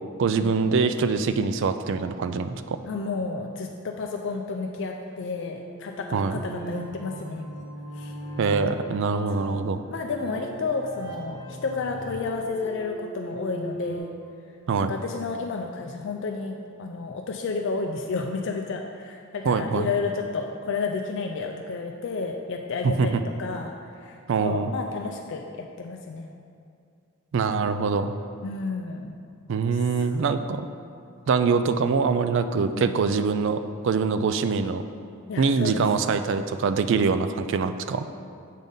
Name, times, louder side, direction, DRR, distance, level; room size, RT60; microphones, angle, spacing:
voice 1, 0.2-2.8 6.1-6.4 8.4-9.8 14.7-14.9 19.5-19.9 22.8-23.2 24.3-24.7 27.3-28.2 29.5-30.7 31.3-34.8 35.4-38.0, right 5 dB, 55° right, 10 dB, 0.3 m, -24 dB
voice 2, 2.9-7.5 8.0-8.2 9.3-14.1 14.8-26.3 28.4-29.1 29.7-30.1 32.5-32.9 35.3-35.8, left 4 dB, 55° left, 2 dB, 0.4 m, -31 dB
sound 1, 5.2-14.0, equal, 20° left, 1.1 m, -38 dB
7.3 x 3.9 x 5.2 m, 2.4 s
head